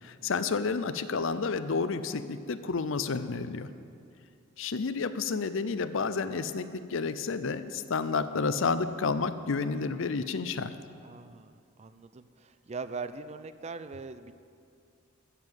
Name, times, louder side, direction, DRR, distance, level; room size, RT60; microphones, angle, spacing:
voice 1, 0.0-3.7 4.6-10.7, left 4 dB, 65° left, 12 dB, 0.6 m, -30 dB
voice 2, 11.0-14.3, right 4 dB, 30° right, 12 dB, 0.4 m, -41 dB
14.0 x 7.1 x 7.4 m, 2.4 s
head